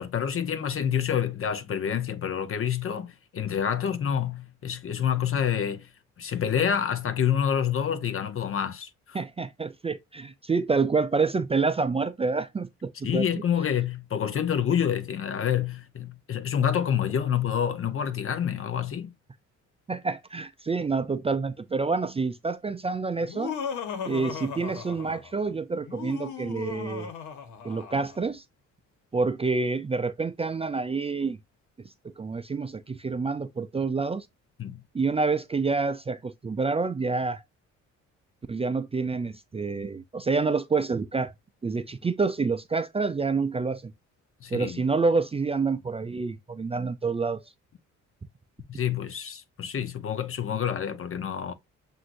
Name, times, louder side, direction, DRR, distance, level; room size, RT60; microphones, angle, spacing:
voice 1, 0.0-5.9 6.2-9.2 13.0-19.1 34.6-34.8 44.4-44.8 48.7-51.5, left 8 dB, 45° left, 0.8 m, -28 dB
voice 2, 9.1-13.3 19.9-23.5 24.1-27.1 27.6-28.4 29.1-31.4 32.2-34.3 34.9-37.4 38.5-41.3 41.6-43.9 44.5-47.4, right 4 dB, 20° right, 0.4 m, -28 dB
Laughter, 23.2-25.4 25.8-28.2, left 7 dB, 80° left, 1.3 m, -37 dB
7.4 x 2.7 x 2.6 m
cardioid pair, 90°, 30 cm